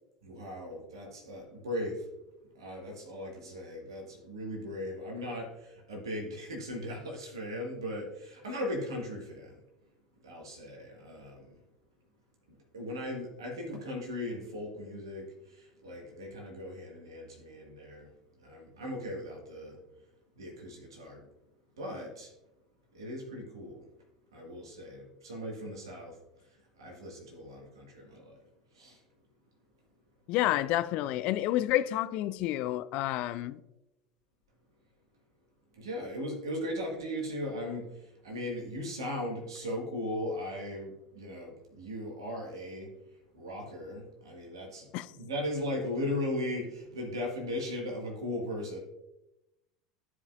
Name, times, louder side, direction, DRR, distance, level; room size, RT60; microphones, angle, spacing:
voice 1, 0.2-2.1 2.6-9.6 10.2-11.6 12.7-18.1 18.4-19.8 20.4-21.2 21.8-22.3 22.9-23.9 24.3-26.2 26.5-28.4 28.7-29.0 35.7-42.9 43.3-44.9 45.2-48.8, left 1 dB, 70° right, 1.9 m, -38 dB
voice 2, 30.3-33.6 44.9-45.1, left 14 dB, 50° left, 0.4 m, -29 dB
13.5 x 4.9 x 2.5 m
figure-of-eight pair, 75°, 3 cm